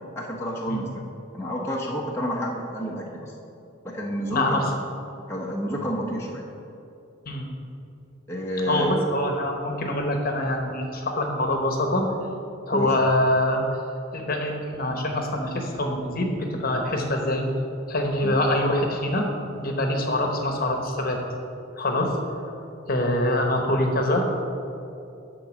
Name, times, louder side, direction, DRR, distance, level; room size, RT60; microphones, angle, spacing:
voice 1, 0.1-0.9 1.3-3.3 3.8-4.6 5.3-6.4 8.3-9.0 12.7-12.9 18.2-18.4, equal, 15° left, -3 dB, 0.8 m, -29 dB
voice 2, 4.3-4.6 7.3-7.5 8.7-12.0 12.7-13.6 14.1-17.5 17.9-19.3 19.6-21.2 21.8-22.1 22.9-24.4, left 1 dB, 45° left, 3 dB, 1.0 m, -24 dB
11.5 x 3.9 x 7.2 m, 2.7 s
head